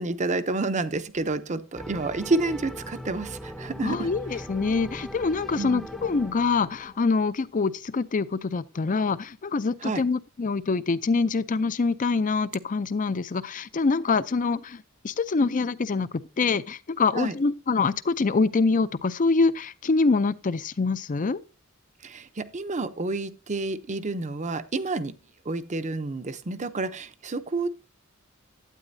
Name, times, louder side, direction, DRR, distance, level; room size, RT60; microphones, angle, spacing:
voice 1, 0.0-4.1 5.6-5.8 9.8-10.0 17.1-17.3 22.0-25.1 25.5-27.7, right 3 dB, 35° right, 0.7 m, -29 dB
sound 1, 1.7-7.3, equal, ahead, 0.7 m, -40 dB
voice 2, 3.8-21.4, left 4 dB, 40° left, 0.5 m, -25 dB
12.0 x 8.9 x 2.7 m
head